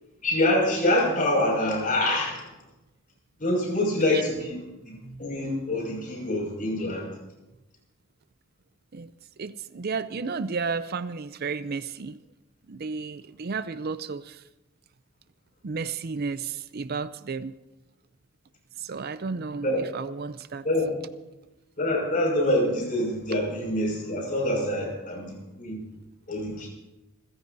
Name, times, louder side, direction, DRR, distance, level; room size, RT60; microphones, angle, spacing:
voice 1, 0.2-2.4 3.4-7.1 19.6-19.8 20.6-20.9 21.8-25.8 26.3-26.7, left 1 dB, 40° left, 0 dB, 5.9 m, -26 dB
voice 2, 9.4-12.2 12.7-14.4 15.6-17.5 18.8-20.6, right 4 dB, 50° right, 13 dB, 0.5 m, -33 dB
27.5 x 16.0 x 2.7 m, 1.0 s
head